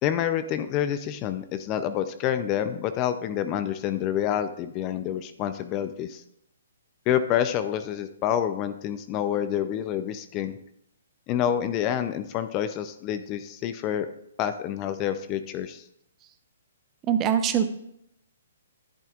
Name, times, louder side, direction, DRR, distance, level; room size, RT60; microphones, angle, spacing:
voice 1, 0.0-6.2 7.1-10.6 11.3-14.1 14.4-15.8, left 10 dB, 30° left, 10 dB, 0.5 m, -28 dB
voice 2, 17.1-17.6, right 9 dB, 25° right, 9 dB, 0.7 m, -22 dB
10.5 x 9.0 x 2.5 m, 0.74 s
hypercardioid pair, 140°, 0 cm